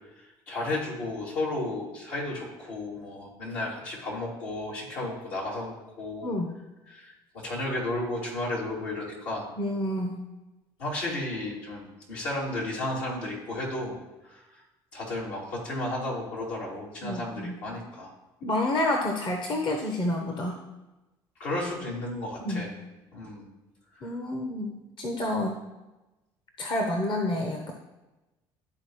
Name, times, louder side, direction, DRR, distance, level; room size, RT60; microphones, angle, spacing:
voice 1, 0.2-6.3 6.9-9.5 10.8-14.0 14.2-14.4 14.9-18.1 21.4-22.7 23.1-23.5 24.0-24.2, left 2 dB, 80° left, -5 dB, 2.6 m, -33 dB
voice 2, 6.2-6.5 9.6-10.3 17.0-17.6 18.4-20.6 22.4-22.7 24.0-25.6 26.6-27.7, left 1 dB, 45° left, 3 dB, 0.9 m, -29 dB
12.0 x 4.1 x 3.1 m, 1.1 s
hypercardioid pair, 65°, 12 cm